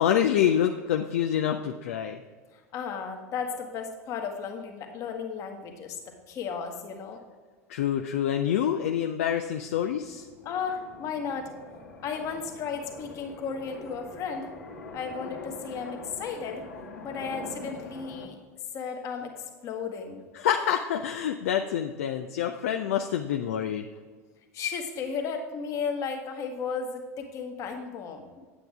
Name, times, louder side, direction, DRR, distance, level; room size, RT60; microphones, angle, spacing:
voice 1, 0.0-2.2 7.7-10.3 20.3-23.9, left 9 dB, 60° left, 5 dB, 0.5 m, -26 dB
voice 2, 2.5-7.2 10.4-11.5 12.0-14.5 14.9-16.6 17.0-18.4 18.7-20.2 24.5-28.3, left 6 dB, 40° left, 4 dB, 1.4 m, -34 dB
sound 1, 9.4-18.3, left 2 dB, 80° left, 1.6 m, -44 dB
9.1 x 8.0 x 3.5 m, 1.5 s
figure-of-eight pair, 75°, 8 cm